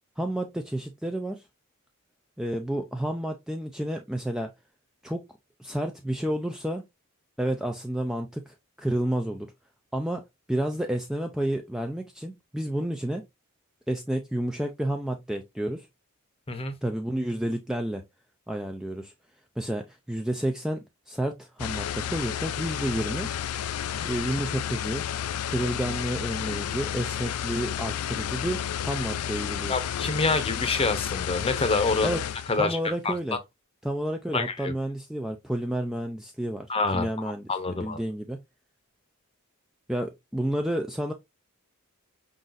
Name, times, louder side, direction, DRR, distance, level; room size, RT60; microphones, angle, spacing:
voice 1, 0.2-1.4 2.4-4.5 5.0-5.2 5.6-6.8 7.4-9.5 9.9-13.2 13.9-15.9 16.8-18.0 18.5-19.1 19.6-20.8 21.1-23.3 24.0-25.1 25.5-29.7 32.0-32.2 32.6-33.4 33.8-36.7 36.9-38.4 39.9-41.1, right 1 dB, ahead, 0.3 m, -30 dB
sound 1, 21.6-32.6, left 10 dB, 85° left, 0.4 m, -31 dB
voice 2, 29.7-32.2 32.5-32.8 33.0-33.1 34.3-34.7 36.7-38.0, left 3 dB, 25° left, 0.7 m, -27 dB
5.0 x 3.9 x 2.5 m
head